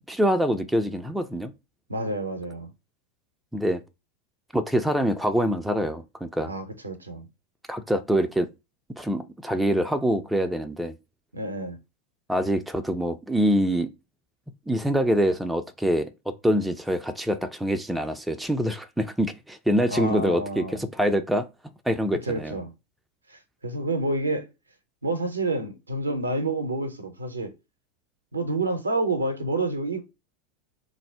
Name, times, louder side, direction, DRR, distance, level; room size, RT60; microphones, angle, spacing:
voice 1, 0.1-1.5 3.5-3.8 4.5-6.5 7.7-8.5 9.0-10.9 12.3-13.9 14.7-21.5 21.9-22.6, equal, 5° right, 0.3 m, -25 dB
voice 2, 1.9-2.7 6.5-7.3 11.3-11.8 19.9-20.8 22.3-22.7 23.3-24.4 25.0-27.5 28.3-30.0, right 2 dB, 80° right, 0.5 m, -28 dB
2.5 x 2.0 x 3.4 m
figure-of-eight pair, 85°, 0 cm